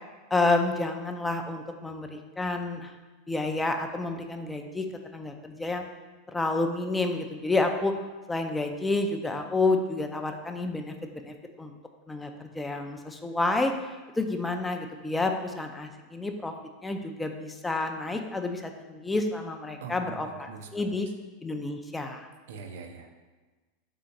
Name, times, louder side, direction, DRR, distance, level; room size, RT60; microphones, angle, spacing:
voice 1, 0.3-2.9 3.3-4.9 5.1-5.8 6.3-7.9 8.3-11.7 12.1-13.7 14.2-16.5 16.8-21.1 21.4-22.3, left 2 dB, 10° left, 5 dB, 0.3 m, -29 dB
voice 2, 19.8-20.7 22.5-23.1, right 5 dB, 80° right, 5 dB, 0.5 m, -42 dB
3.7 x 3.3 x 4.0 m, 1.3 s
supercardioid pair, 140°, 0 cm